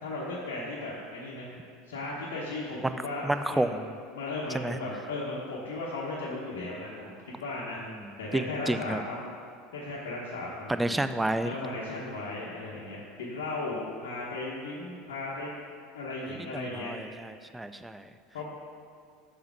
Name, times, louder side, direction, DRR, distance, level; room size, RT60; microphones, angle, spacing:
voice 1, 0.0-1.5 1.9-3.7 4.1-7.8 8.2-9.2 9.7-11.0 11.4-15.5 15.9-16.9 18.3-18.5, left 2 dB, 65° left, -7 dB, 1.1 m, -36 dB
voice 2, 2.8-3.9 4.5-4.8 7.9-8.1 8.3-9.0 10.7-11.5 16.5-18.1, right 1 dB, 10° right, 10 dB, 0.3 m, -30 dB
7.0 x 4.4 x 5.9 m, 2.2 s
figure-of-eight pair, 75°, 0 cm